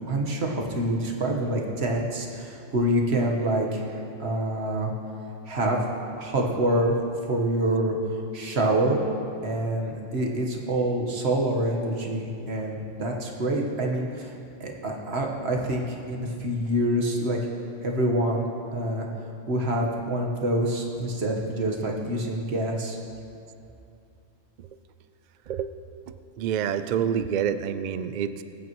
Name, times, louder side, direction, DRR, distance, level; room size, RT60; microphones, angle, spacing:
voice 1, 0.1-4.9 5.5-5.8 6.2-6.9 7.3-9.0 9.4-14.3 14.6-17.4 17.8-18.5 18.7-19.1 19.5-23.0, right 1 dB, 55° right, 0 dB, 1.6 m, -26 dB
voice 2, 25.5-28.4, right 8 dB, 75° right, 11 dB, 0.4 m, -28 dB
21.0 x 9.3 x 3.1 m, 2.6 s
omnidirectional pair, 1.3 m